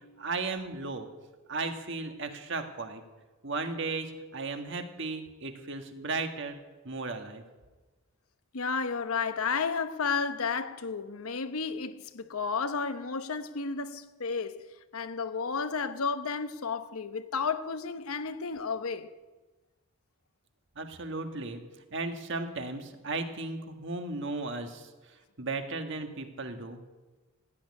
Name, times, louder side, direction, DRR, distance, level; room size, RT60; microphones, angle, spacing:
voice 1, 0.2-1.1 1.5-3.0 3.4-7.4 20.7-21.6 21.9-24.9 25.4-26.8, right 3 dB, 55° right, 1.6 m, -35 dB
voice 2, 8.5-14.6 14.9-19.1, left 5 dB, 80° left, 0.9 m, -32 dB
15.0 x 8.5 x 9.7 m
head